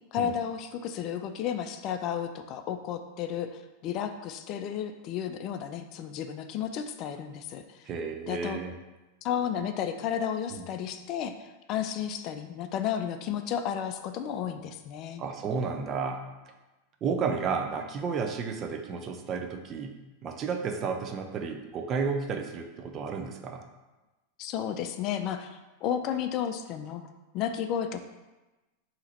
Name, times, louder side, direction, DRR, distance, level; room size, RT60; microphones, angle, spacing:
voice 1, 0.1-7.9 8.3-8.6 9.2-15.2 24.4-27.0 27.3-28.0, left 9 dB, 45° left, 8 dB, 0.3 m, -33 dB
voice 2, 7.9-8.7 10.5-10.6 15.2-16.2 17.0-23.6, right 5 dB, 35° right, 4 dB, 0.5 m, -32 dB
4.0 x 2.9 x 4.2 m, 1.1 s
hypercardioid pair, 100°, 0 cm